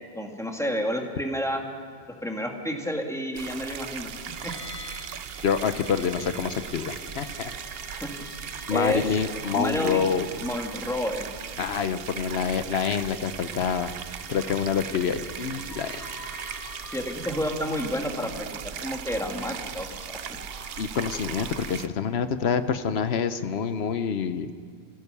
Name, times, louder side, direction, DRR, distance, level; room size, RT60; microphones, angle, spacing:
voice 1, 0.1-1.6 2.2-4.1 4.4-4.5 7.9-8.1 8.7-9.1 9.5-10.1 10.4-11.3 16.9-20.4, equal, 5° left, 1 dB, 2.1 m, -30 dB
sound 1, 3.3-21.9, right 8 dB, 70° right, 0.9 m, -38 dB
sound 2, 4.0-18.3, left 2 dB, 35° left, 1.2 m, -48 dB
voice 2, 5.4-7.5 8.7-10.3 11.6-13.9 14.3-15.9 20.8-24.5, left 6 dB, 85° left, 11 dB, 1.1 m, -27 dB
sound 3, 15.7-21.7, equal, 20° left, 3.0 m, -48 dB
26.5 x 15.5 x 6.9 m, 2.2 s
omnidirectional pair, 1.0 m